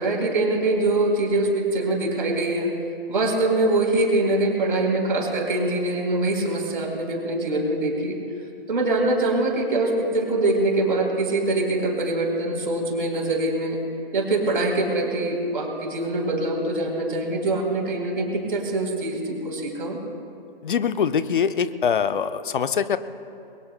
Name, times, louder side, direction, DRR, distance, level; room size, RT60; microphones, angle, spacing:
voice 1, 0.0-2.7 3.1-8.1 8.7-13.8 14.1-20.0, right 2 dB, 60° right, 1 dB, 3.9 m, -23 dB
voice 2, 20.6-23.0, left 7 dB, 60° left, 11 dB, 0.9 m, -23 dB
29.0 x 22.0 x 2.2 m, 2.5 s
figure-of-eight pair, 125°, 29 cm